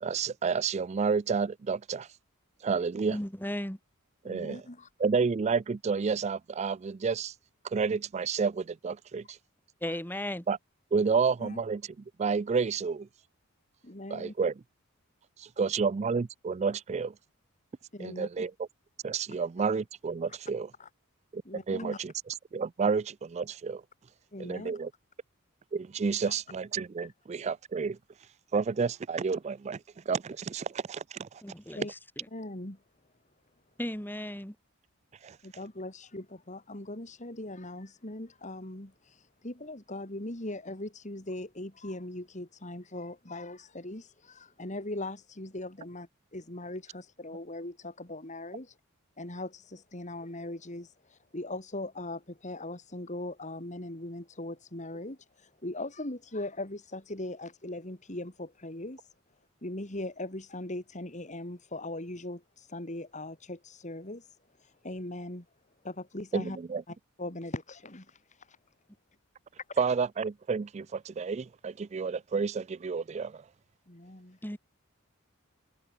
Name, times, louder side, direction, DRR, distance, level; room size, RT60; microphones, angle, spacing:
voice 1, 0.0-2.1 2.6-3.2 4.2-4.6 5.0-7.3 7.6-9.4 10.5-10.6 10.9-11.8 12.2-13.1 14.1-14.5 15.4-17.1 18.0-18.5 19.0-20.7 21.3-21.4 21.7-22.1 22.5-23.8 24.4-24.9 25.7-28.0 28.5-29.8 30.1-31.3 35.2-35.4 66.3-66.8 69.8-73.4, right 5 dB, 30° right, 0.3 m, -30 dB
voice 2, 3.1-3.8 9.8-10.5 31.4-32.3 33.8-34.6 74.4-74.6, left 1 dB, 10° left, 2.9 m, -36 dB
voice 3, 4.2-4.9 9.9-10.0 11.4-11.6 13.8-14.3 17.9-18.3 19.3-19.4 20.3-20.4 20.8-20.9 21.4-22.0 24.3-24.8 31.7-31.9 32.3-32.8 35.4-48.8 49.2-59.1 59.6-65.5 65.8-66.6 66.9-68.6 69.7-69.8 73.9-74.4, left 1 dB, 35° left, 2.7 m, -40 dB
head